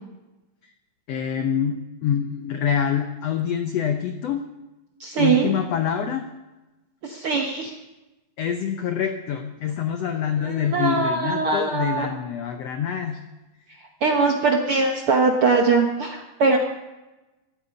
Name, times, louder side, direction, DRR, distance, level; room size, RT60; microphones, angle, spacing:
voice 1, 1.1-4.4 5.1-6.3 8.4-13.2, left 8 dB, 90° left, 6 dB, 1.4 m, -26 dB
voice 2, 5.0-5.5 7.0-7.7 10.4-12.1 14.0-16.6, right 4 dB, 65° right, 2 dB, 1.3 m, -21 dB
16.0 x 13.5 x 5.3 m, 1.1 s
omnidirectional pair, 4.1 m